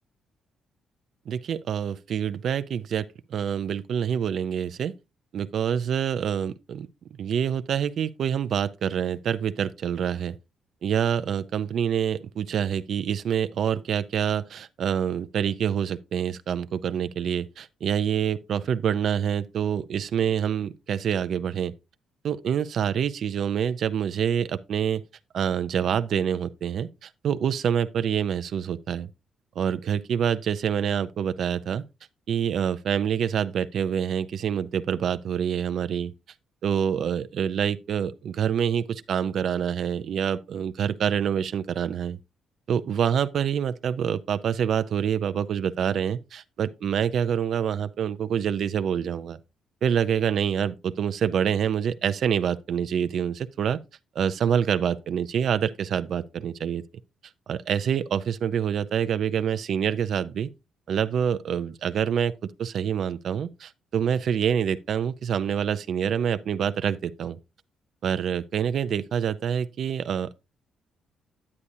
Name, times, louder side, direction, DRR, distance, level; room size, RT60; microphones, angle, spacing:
voice 1, 1.3-4.9 5.3-6.9 7.2-10.4 10.8-21.7 22.2-25.0 25.3-29.1 29.6-31.8 32.3-36.1 36.6-42.2 42.7-49.4 49.8-53.8 54.2-56.8 57.5-60.5 60.9-62.3 62.6-67.4 68.0-70.3, right 8 dB, 65° right, 0.5 m, -26 dB
9.7 x 8.6 x 2.7 m
cardioid pair, 90°, 0 cm